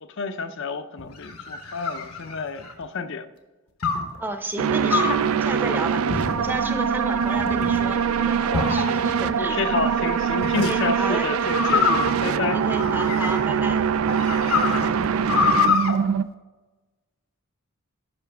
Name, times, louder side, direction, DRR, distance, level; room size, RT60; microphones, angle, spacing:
voice 1, 0.0-3.3 9.4-12.6, left 4 dB, 60° left, 10 dB, 0.6 m, -29 dB
sound 1, 1.0-2.8 3.8-4.2 4.9-5.3 6.1-6.6 7.2-7.8 8.5-9.3 10.4-10.7 11.5-13.6 14.1-15.9, left 5 dB, 85° left, 1.1 m, -25 dB
voice 2, 4.2-9.6 10.6-11.3 12.5-14.2, right 2 dB, 10° right, 7 dB, 0.7 m, -32 dB
sound 2, 4.6-16.2, right 7 dB, 75° right, 0.3 m, -23 dB
sound 3, 6.5-6.6 7.2-7.3 7.5-7.9 8.5-9.2 10.0-10.4 10.9-11.0 11.5-12.7 13.0-13.1 13.4-13.8 14.2-14.5 15.1-15.9 16.2-16.3, equal, 45° right, 0.8 m, -38 dB
11.0 x 5.7 x 3.4 m, 1.2 s
head